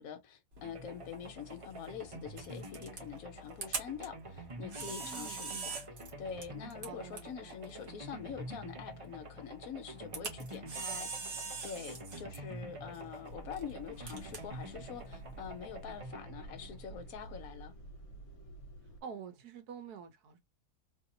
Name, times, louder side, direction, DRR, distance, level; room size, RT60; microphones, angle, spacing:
voice 1, 0.0-5.8 6.2-17.7, left 7 dB, 70° left, 1.1 m, -45 dB
Camera, 0.5-16.0, right 3 dB, 50° right, 1.3 m, -45 dB
sound 1, 0.6-17.6, right 2 dB, 30° right, 0.6 m, -48 dB
voice 2, 5.0-5.8 6.8-7.6 19.0-20.4, right 7 dB, 80° right, 1.3 m, -48 dB
sound 2, 13.3-19.0, right 2 dB, 50° left, 1.5 m, -50 dB
3.2 x 2.7 x 2.6 m
omnidirectional pair, 1.6 m